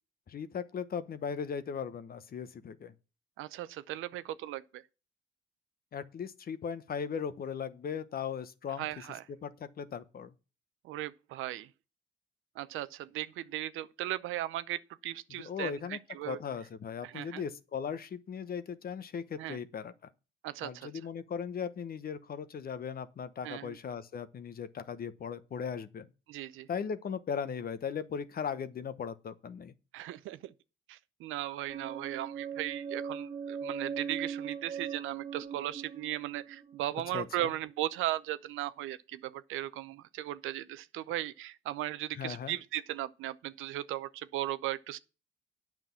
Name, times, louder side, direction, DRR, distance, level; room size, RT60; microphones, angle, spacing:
voice 1, 0.3-2.9 5.9-8.9 9.4-10.3 15.4-16.0 16.3-19.9 20.6-26.1 26.7-29.7 37.1-37.2 42.2-42.6, left 7 dB, 50° left, 0.9 m, -38 dB
voice 2, 3.4-4.8 8.8-9.2 10.8-11.7 12.6-16.4 17.0-17.4 19.4-19.6 20.4-20.9 23.4-23.8 26.3-26.7 29.9-30.5 30.9-45.0, right 14 dB, 90° right, 0.6 m, -37 dB
sound 1, 31.7-37.5, right 7 dB, 35° right, 1.5 m, -40 dB
9.0 x 5.9 x 7.1 m
cardioid pair, 90°, 20 cm